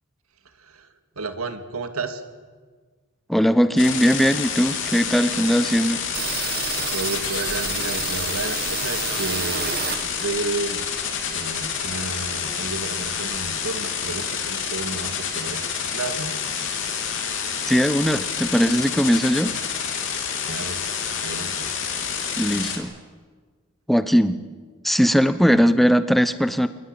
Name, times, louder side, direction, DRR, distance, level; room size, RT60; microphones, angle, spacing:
voice 1, 0.4-2.2 6.8-10.9 11.3-16.4 20.4-20.8 21.2-21.7, right 3 dB, 90° right, 8 dB, 2.2 m, -32 dB
voice 2, 3.3-6.0 17.7-19.5 22.4-22.9 23.9-24.4 24.8-26.7, equal, ahead, 12 dB, 0.8 m, -19 dB
sound 1, 3.8-22.8, left 7 dB, 60° left, 3.7 m, -28 dB
sound 2, 6.1-10.5 10.8-12.2 12.5-12.6 12.9-13.6, right 8 dB, 45° right, 1.4 m, -31 dB
26.5 x 19.5 x 8.8 m, 1.5 s
head